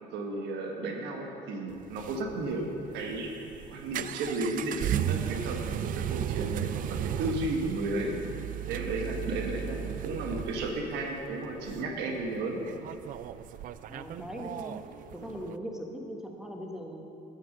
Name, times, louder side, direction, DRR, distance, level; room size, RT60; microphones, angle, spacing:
voice 1, 0.0-3.3 3.7-8.2 8.7-12.6, right 2 dB, 85° right, 2 dB, 1.3 m, -33 dB
sound 1, 1.7-15.5, right 11 dB, 55° right, 0.4 m, -36 dB
voice 2, 13.9-14.8 15.2-17.0, equal, 5° right, 1 dB, 1.3 m, -40 dB
9.1 x 7.6 x 6.6 m, 2.7 s
cardioid pair, 110°, 17 cm